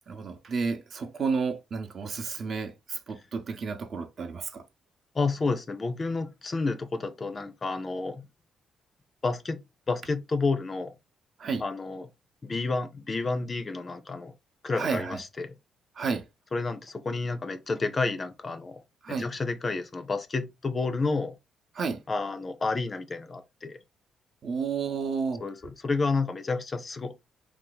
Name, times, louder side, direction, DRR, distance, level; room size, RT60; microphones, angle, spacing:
voice 1, 0.1-4.6 11.4-11.6 14.8-15.2 16.0-16.2 19.0-19.3 21.8-22.0 24.4-25.4, right 5 dB, 50° right, 0.7 m, -31 dB
voice 2, 5.1-8.2 9.2-9.6 9.9-10.9 11.6-12.1 12.4-14.3 14.6-15.5 16.5-18.8 19.1-21.4 22.1-23.8 25.4-27.2, left 3 dB, 35° left, 0.5 m, -30 dB
2.7 x 2.4 x 3.8 m
cardioid pair, 90°, 0 cm